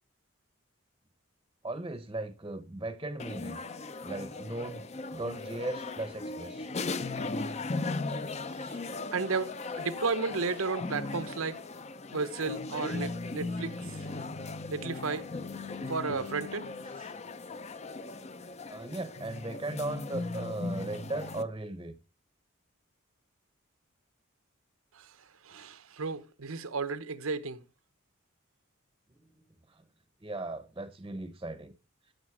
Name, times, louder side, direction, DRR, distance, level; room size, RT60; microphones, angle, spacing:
voice 1, 1.6-3.6 4.0-6.7 18.7-21.9 29.7-29.8 30.2-31.7, right 2 dB, 20° right, 0.7 m, -37 dB
sound 1, 3.2-21.4, left 3 dB, 30° left, 0.5 m, -38 dB
voice 2, 9.1-11.6 12.1-13.7 14.7-15.3 15.9-16.7 25.0-25.1 25.4-27.6, right 4 dB, 90° right, 0.9 m, -33 dB
13.5 x 5.1 x 4.8 m
head